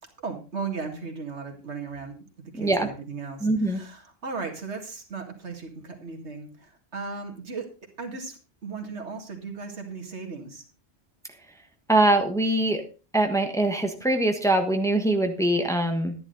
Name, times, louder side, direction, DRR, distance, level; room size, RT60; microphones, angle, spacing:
voice 1, 0.2-2.2 2.5-7.6 8.0-10.6, right 4 dB, 90° right, 4 dB, 2.3 m, -36 dB
voice 2, 2.6-2.9 3.4-3.8 11.9-12.8 13.1-16.1, right 1 dB, 5° left, 5 dB, 1.3 m, -23 dB
11.5 x 10.5 x 3.9 m, 0.34 s
omnidirectional pair, 1.1 m